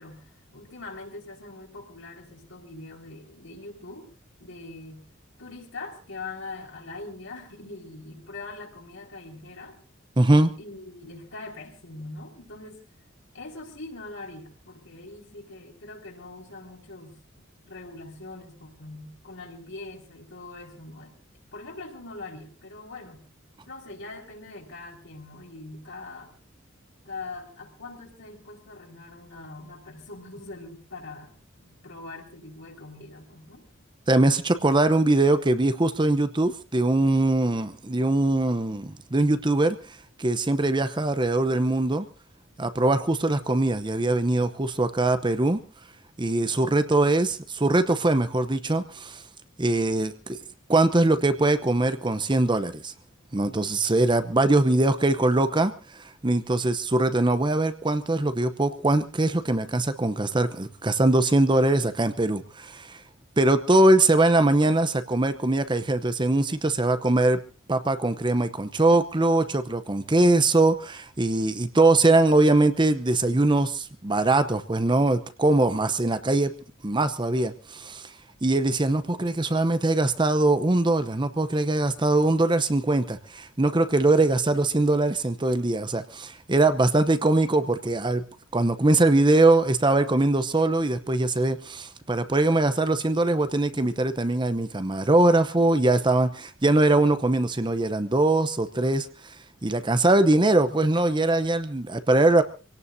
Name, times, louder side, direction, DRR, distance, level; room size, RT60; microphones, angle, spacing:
voice 1, 0.0-4.1 4.4-5.1 5.4-9.8 10.4-12.8 13.3-17.2 17.6-21.1 21.5-23.2 23.7-26.3 27.0-33.7, left 2 dB, 70° left, 1 dB, 4.7 m, -42 dB
voice 2, 10.2-10.5 34.1-39.8 40.2-42.1 42.6-45.6 46.2-49.2 49.6-50.4 50.7-52.9 53.3-63.0 63.4-67.4 67.7-76.5 76.8-78.1 78.4-88.2 88.5-99.1 99.6-102.4, right 2 dB, 25° right, 11 dB, 0.8 m, -22 dB
26.0 x 17.5 x 2.7 m, 0.33 s
head